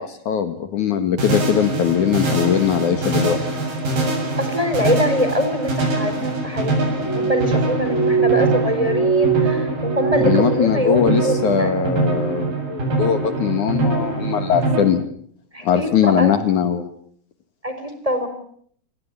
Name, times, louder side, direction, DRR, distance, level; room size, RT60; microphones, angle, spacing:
voice 1, 0.0-3.4 10.2-15.0 15.6-16.9, left 8 dB, 65° left, 10 dB, 2.8 m, -20 dB
sound 1, 1.2-14.8, right 2 dB, 85° right, 9.8 m, -23 dB
voice 2, 4.4-11.7 15.5-16.3 17.6-18.3, left 1 dB, 10° right, 8 dB, 4.4 m, -23 dB
Glass, 7.0-11.6 11.9-12.5 12.9-13.5 14.1-14.3, right 7 dB, 30° left, 2.2 m, -23 dB
29.5 x 20.5 x 8.9 m, 0.64 s
omnidirectional pair, 4.1 m